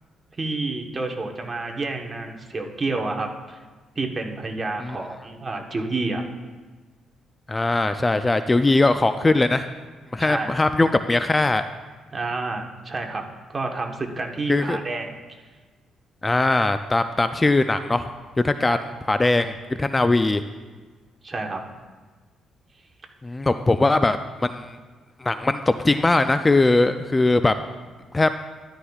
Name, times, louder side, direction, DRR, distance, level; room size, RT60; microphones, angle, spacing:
voice 1, 0.4-3.6 3.9-6.2 10.2-10.5 12.1-15.4 18.7-18.8 21.2-21.6, right 3 dB, 30° right, 3 dB, 1.2 m, -29 dB
voice 2, 7.5-9.7 10.1-11.6 14.5-14.8 16.2-18.1 18.4-18.8 19.1-19.5 19.8-20.4 23.2-24.8 25.2-27.5 28.1-28.4, left 2 dB, 20° left, 9 dB, 0.4 m, -20 dB
13.0 x 11.0 x 2.4 m, 1.3 s
cardioid pair, 90°, 0 cm